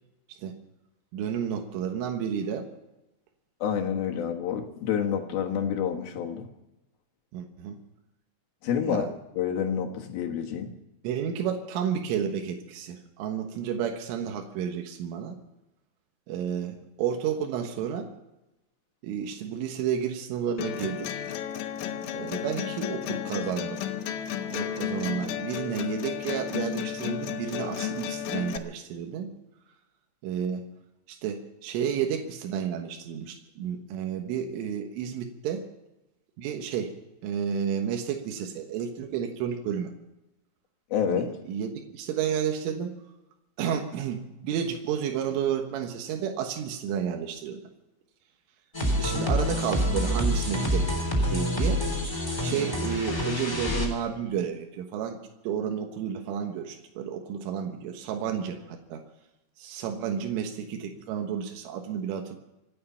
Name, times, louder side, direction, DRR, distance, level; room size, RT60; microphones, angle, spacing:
voice 1, 1.1-2.7 7.3-7.8 8.8-9.1 11.0-15.4 16.3-18.1 19.0-21.1 22.1-23.8 24.4-29.3 30.2-30.7 31.1-35.7 36.4-36.9 37.2-39.9 41.1-42.9 43.6-47.6 49.0-51.0 51.3-52.2 52.4-59.0 59.6-62.4, right 8 dB, 85° right, 3 dB, 3.9 m, -31 dB
voice 2, 3.6-6.5 8.6-9.1 9.3-10.7 40.9-41.4, left 8 dB, 65° left, 2 dB, 2.8 m, -28 dB
sound 1, 20.6-28.6, left 10 dB, 80° left, 3.6 m, -33 dB
sound 2, 48.7-53.9, equal, 5° left, 2.5 m, -27 dB
26.0 x 9.6 x 5.7 m, 0.94 s
omnidirectional pair, 5.5 m